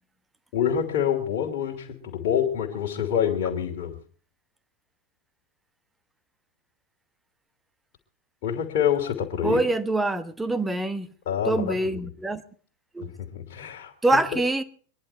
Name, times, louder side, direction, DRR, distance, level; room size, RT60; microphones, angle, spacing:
voice 1, 0.5-4.0 8.4-9.6 11.3-12.0 13.0-14.4, left 9 dB, 50° left, 2.7 m, -27 dB
voice 2, 9.4-11.1 11.4-12.4 12.9-13.1 14.0-14.6, right 2 dB, 10° right, 1.1 m, -24 dB
23.5 x 11.0 x 4.5 m
figure-of-eight pair, 90°, 0 cm